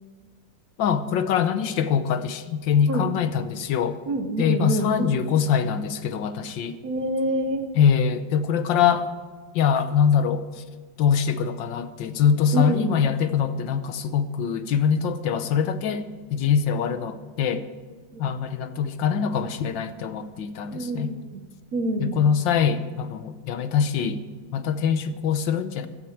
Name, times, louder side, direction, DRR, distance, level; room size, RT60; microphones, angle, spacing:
voice 1, 0.8-4.0 4.4-6.8 7.7-9.1 9.5-10.6 11.0-16.0 16.3-17.6 18.2-21.1 22.0-24.2 24.5-25.9, left 7 dB, 85° left, 11 dB, 1.5 m, -23 dB
voice 2, 4.1-5.2 5.7-5.8 6.8-7.7 12.5-13.0 18.1-18.3 20.7-21.4 21.7-22.2, right 2 dB, 55° right, 7 dB, 1.4 m, -27 dB
15.5 x 12.0 x 4.6 m, 1.5 s
omnidirectional pair, 2.0 m